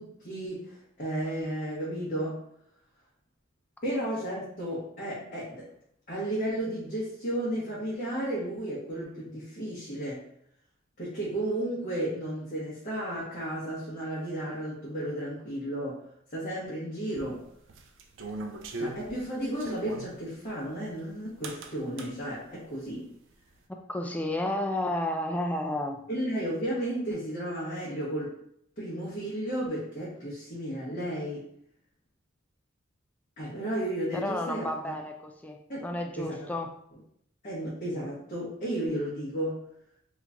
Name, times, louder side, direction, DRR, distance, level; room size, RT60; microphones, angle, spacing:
voice 1, 0.0-2.4 3.8-5.7 6.1-10.2 11.0-16.0 16.3-17.4 18.8-23.1 26.1-28.3 28.8-31.5 33.4-34.9 35.7-36.5 37.4-39.6, right 1 dB, 40° left, -9 dB, 1.1 m, -33 dB
sound 1, 17.2-20.1 21.4-22.1, right 2 dB, 65° right, 0.4 m, -39 dB
voice 2, 23.9-26.0 34.1-36.7, left 1 dB, 10° left, 3 dB, 0.3 m, -31 dB
3.0 x 2.5 x 3.4 m, 0.70 s
head